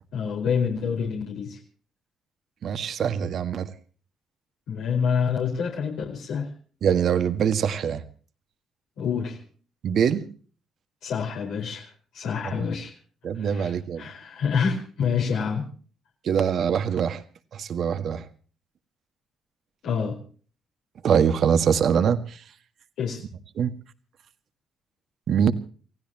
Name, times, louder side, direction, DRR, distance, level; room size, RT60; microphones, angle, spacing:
voice 1, 0.1-1.6 4.7-6.5 9.0-9.4 11.0-12.9 13.4-13.7 14.0-15.7 19.8-20.2 23.0-23.2, left 6 dB, 85° left, -2 dB, 4.7 m, -27 dB
voice 2, 2.6-3.7 6.8-8.0 9.8-10.2 12.4-12.7 13.2-14.1 16.2-17.2 17.5-18.2 21.0-22.4 23.6-23.7 25.3-25.5, right 7 dB, 65° right, 10 dB, 1.7 m, -23 dB
29.5 x 16.0 x 2.9 m, 0.42 s
cardioid pair, 90°, 0 cm